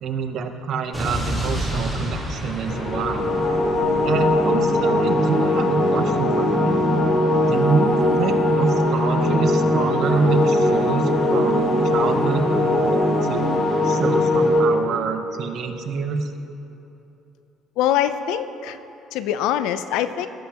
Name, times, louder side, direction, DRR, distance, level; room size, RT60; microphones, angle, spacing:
voice 1, 0.0-3.4 4.0-6.8 7.3-13.5 13.8-16.3, right 5 dB, 45° right, 7 dB, 0.6 m, -26 dB
Explosion, 0.9-5.0, equal, ahead, 1.9 m, -29 dB
sound 1, 2.7-14.6, left 1 dB, 50° left, 2.1 m, -20 dB
voice 2, 17.8-18.8 19.1-20.3, left 10 dB, 80° left, 11 dB, 0.4 m, -23 dB
17.0 x 7.6 x 2.9 m, 3.0 s
cardioid pair, 180°, 0 cm